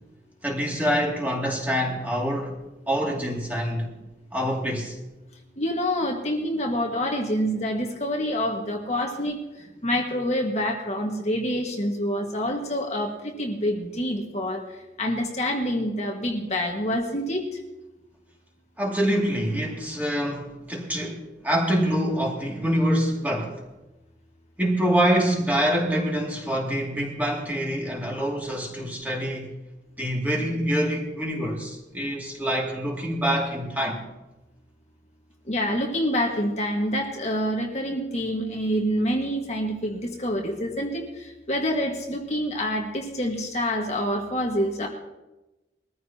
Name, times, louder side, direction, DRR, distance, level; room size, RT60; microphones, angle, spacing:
voice 1, 0.4-2.5 2.9-3.9 4.3-4.9 18.8-23.6 24.6-29.5 30.0-34.0, equal, 10° right, 2.4 m, -25 dB
voice 2, 5.6-14.6 15.0-17.4 35.5-44.9, equal, 40° left, 1.7 m, -27 dB
22.0 x 14.0 x 2.9 m
head